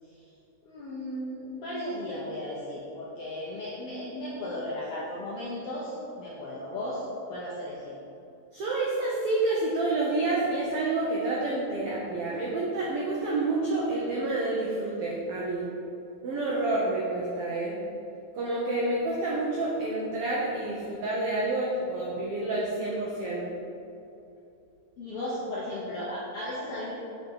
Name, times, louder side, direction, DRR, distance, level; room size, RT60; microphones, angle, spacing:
voice 1, 0.6-8.0 25.0-26.9, left 1 dB, 75° left, -7 dB, 1.4 m, -35 dB
voice 2, 8.5-15.7 16.2-17.8 18.3-23.5, right 2 dB, 85° right, -5 dB, 1.2 m, -28 dB
5.2 x 5.1 x 4.4 m, 2.6 s
omnidirectional pair, 3.6 m